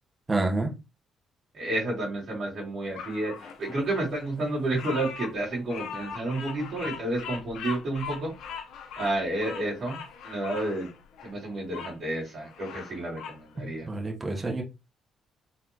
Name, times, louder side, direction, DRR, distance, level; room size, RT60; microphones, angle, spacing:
voice 1, 0.3-0.7 13.6-14.6, right 2 dB, 25° right, 1.6 m, -28 dB
voice 2, 1.5-8.3 9.0-10.9 11.2-13.9, right 2 dB, 60° right, 2.7 m, -31 dB
Bird vocalization bird call bird song, 3.0-12.0 12.4-13.4, left 7 dB, 80° left, 0.9 m, -40 dB
4.4 x 3.5 x 2.9 m
cardioid pair, 90°, 0 cm